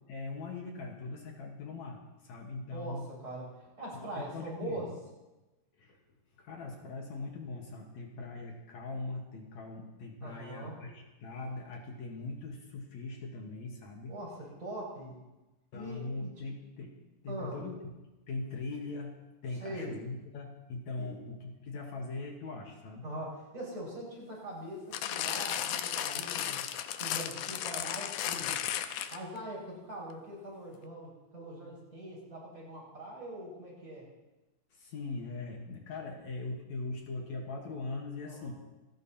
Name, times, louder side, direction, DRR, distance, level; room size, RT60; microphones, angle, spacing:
voice 1, 0.1-2.0 2.2-3.1 3.9-4.8 5.8-6.0 6.4-14.1 15.7-17.0 17.2-17.8 18.3-19.2 19.4-23.0 34.7-38.5, left 3 dB, 65° left, 0 dB, 2.6 m, -41 dB
voice 2, 2.7-4.9 10.2-10.7 14.1-15.2 15.7-16.4 17.3-17.6 19.6-19.9 21.0-21.1 23.0-26.6 27.0-28.5 29.1-34.1 38.3-38.5, right 1 dB, 25° right, -5 dB, 6.1 m, -42 dB
sound 1, 24.9-29.4 30.1-30.2, left 11 dB, 85° left, 2.2 m, -34 dB
27.5 x 10.5 x 2.9 m, 1.1 s
omnidirectional pair, 3.6 m